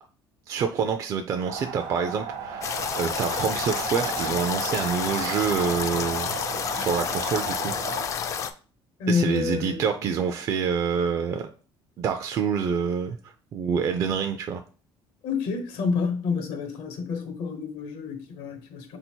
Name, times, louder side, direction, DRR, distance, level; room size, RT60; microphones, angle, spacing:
voice 1, 0.5-6.4 6.7-7.7 9.1-11.5 12.0-14.6, right 6 dB, 40° right, 0.4 m, -27 dB
sound 1, 1.4-8.1, right 6 dB, 80° right, 1.1 m, -35 dB
sound 2, 2.6-8.5, left 7 dB, 35° left, 0.3 m, -30 dB
voice 2, 9.0-9.9 15.2-19.0, left 5 dB, 80° left, 1.0 m, -28 dB
3.9 x 2.7 x 4.4 m
cardioid pair, 160°, 9 cm